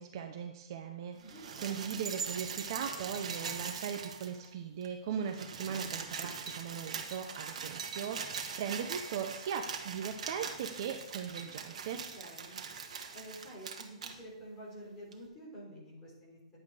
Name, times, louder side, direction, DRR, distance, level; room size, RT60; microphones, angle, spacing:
voice 1, 0.0-12.0, right 7 dB, 35° right, 5 dB, 0.8 m, -39 dB
voice 2, 1.2-1.9 11.9-12.6 13.1-16.4, right 1 dB, 10° left, -6 dB, 3.9 m, -49 dB
sound 1, 1.2-4.5 4.8-4.9 5.1-14.1 15.1-15.2, right 6 dB, 65° right, 1.7 m, -41 dB
10.5 x 8.3 x 5.0 m, 0.86 s
hypercardioid pair, 180°, 4 cm